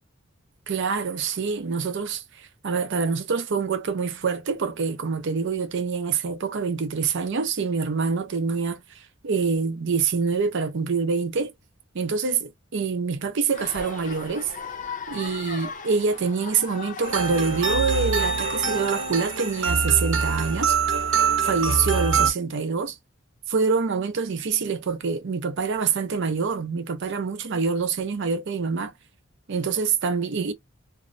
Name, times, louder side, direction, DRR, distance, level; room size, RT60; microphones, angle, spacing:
voice 1, 0.7-8.8 9.2-11.5 11.9-14.5 15.1-20.8 21.4-23.0 23.5-28.9 29.5-30.5, right 5 dB, 65° right, 0.5 m, -25 dB
sound 1, 13.5-21.8, left 5 dB, 40° left, 0.5 m, -39 dB
sound 2, 17.0-22.3, right 5 dB, 90° right, 0.9 m, -24 dB
2.6 x 2.0 x 2.5 m
head